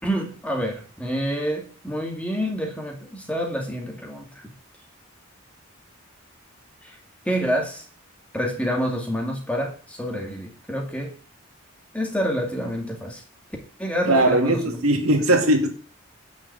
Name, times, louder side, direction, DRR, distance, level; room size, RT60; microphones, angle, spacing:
voice 1, 0.0-4.2 6.8-7.0 7.3-7.8 8.3-11.1 11.9-13.2 13.8-14.9, equal, 5° left, 0 dB, 2.3 m, -27 dB
voice 2, 14.1-15.7, right 1 dB, 80° right, 3 dB, 2.2 m, -19 dB
10.0 x 5.7 x 8.4 m, 0.41 s
head